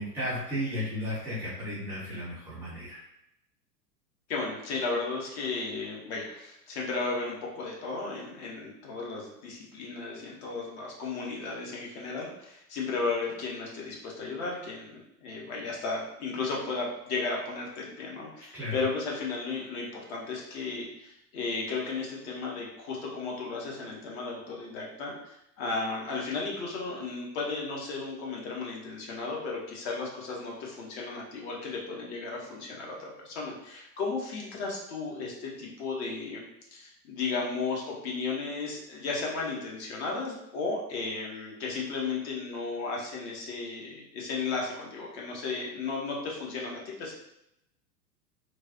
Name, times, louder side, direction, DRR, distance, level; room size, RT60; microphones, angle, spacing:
voice 1, 0.0-3.0 18.5-18.8, left 1 dB, 5° right, -12 dB, 0.5 m, -34 dB
voice 2, 4.3-36.4 36.7-47.2, left 4 dB, 40° left, -3 dB, 0.9 m, -34 dB
3.1 x 2.2 x 2.6 m, 0.81 s
figure-of-eight pair, 95°, 50 cm